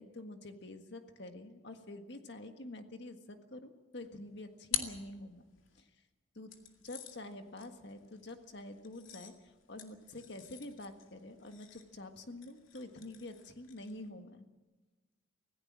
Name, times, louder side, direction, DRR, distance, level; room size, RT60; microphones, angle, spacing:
voice 1, 0.0-5.4 5.8-5.9 6.3-6.5 6.8-14.5, left 1 dB, 55° left, 6 dB, 1.6 m, -47 dB
sound 1, 4.0-5.8 6.5-14.1, left 9 dB, 75° left, 2.3 m, -46 dB
25.0 x 16.5 x 7.5 m, 1.2 s
head